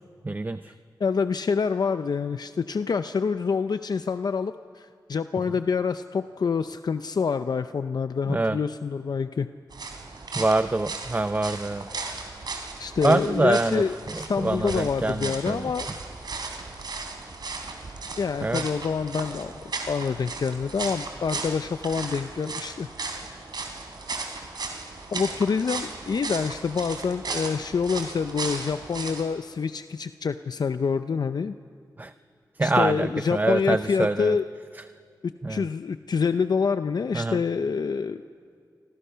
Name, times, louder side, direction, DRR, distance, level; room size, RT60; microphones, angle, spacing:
voice 1, 0.2-0.7 8.3-8.6 10.3-11.9 13.0-15.7 18.4-18.7 32.0-32.1 32.6-34.4 35.4-35.7 37.1-37.4, right 2 dB, 25° right, 11 dB, 0.6 m, -25 dB
voice 2, 1.0-9.5 12.8-15.9 18.2-19.5 19.9-22.9 25.1-31.5 32.6-34.4 35.2-38.2, left 5 dB, 60° left, 10 dB, 0.6 m, -27 dB
sound 1, 9.7-29.3, right 3 dB, 70° right, 3.4 m, -36 dB
29.0 x 25.5 x 5.7 m, 2.3 s
wide cardioid pair, 80°, 8 cm